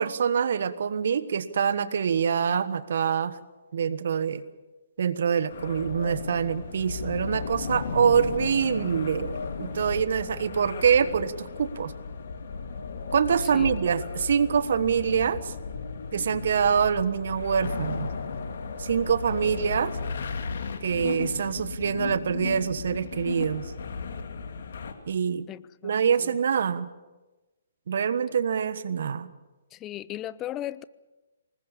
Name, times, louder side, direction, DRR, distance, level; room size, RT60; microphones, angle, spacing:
voice 1, 0.0-3.4 3.7-4.4 5.0-11.9 13.1-15.5 16.1-18.1 18.8-20.0 20.8-23.7 25.1-25.5 25.8-26.9 27.9-29.3, right 7 dB, 60° right, 1.4 m, -25 dB
sound 1, 5.5-24.9, left 5 dB, 60° left, 2.7 m, -35 dB
voice 2, 25.5-25.9 26.2-26.3 29.7-30.8, left 13 dB, 20° left, 0.7 m, -37 dB
25.0 x 20.5 x 7.1 m
figure-of-eight pair, 130°, 0 cm